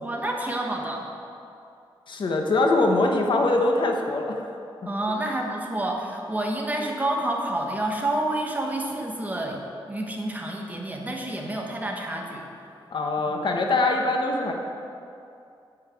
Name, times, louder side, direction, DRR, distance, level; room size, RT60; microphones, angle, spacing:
voice 1, 0.0-1.0 4.8-12.5, right 1 dB, 15° right, 0 dB, 1.2 m, -29 dB
voice 2, 2.1-4.5 12.9-14.5, left 2 dB, 60° left, 2 dB, 1.1 m, -23 dB
9.7 x 5.6 x 8.1 m, 2.6 s
wide cardioid pair, 145°, 9 cm